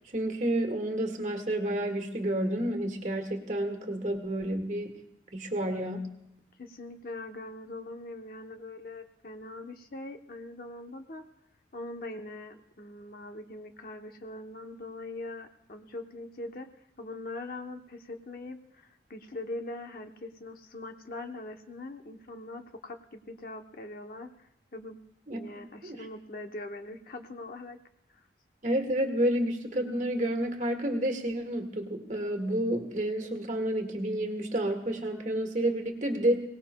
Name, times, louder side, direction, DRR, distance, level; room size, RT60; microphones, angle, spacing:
voice 1, 0.0-4.9 5.3-6.1 25.3-26.0 28.6-36.4, right 1 dB, 40° right, 4 dB, 1.7 m, -30 dB
voice 2, 6.6-11.3 11.7-16.7 17.0-25.0 25.3-27.8 28.1-28.3, left 2 dB, 50° left, 5 dB, 0.8 m, -42 dB
23.5 x 18.0 x 2.2 m, 0.81 s
head